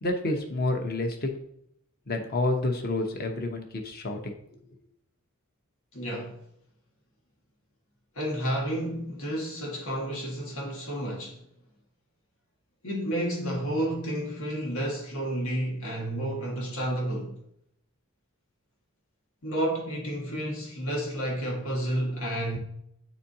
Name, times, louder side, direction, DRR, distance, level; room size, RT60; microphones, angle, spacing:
voice 1, 0.0-1.3 2.1-4.3, left 2 dB, 45° left, 1.0 m, -29 dB
voice 2, 5.9-6.4 8.2-11.4 12.8-17.4 19.4-22.6, right 1 dB, 90° left, 1.7 m, -31 dB
9.4 x 4.2 x 2.8 m
head